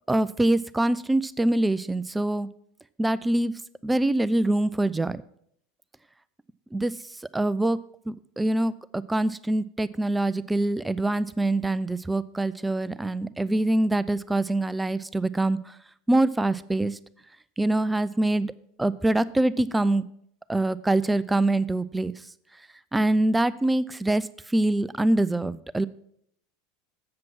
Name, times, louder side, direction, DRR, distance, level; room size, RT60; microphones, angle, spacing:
voice 1, 0.1-2.5 3.0-3.5 3.8-5.2 6.7-7.0 7.3-7.8 8.1-15.7 16.1-17.0 17.6-18.5 18.8-20.1 20.5-22.1 22.9-25.9, right 1 dB, 10° right, 16 dB, 0.4 m, -24 dB
7.6 x 7.5 x 6.0 m, 0.68 s
figure-of-eight pair, 80°, 0 cm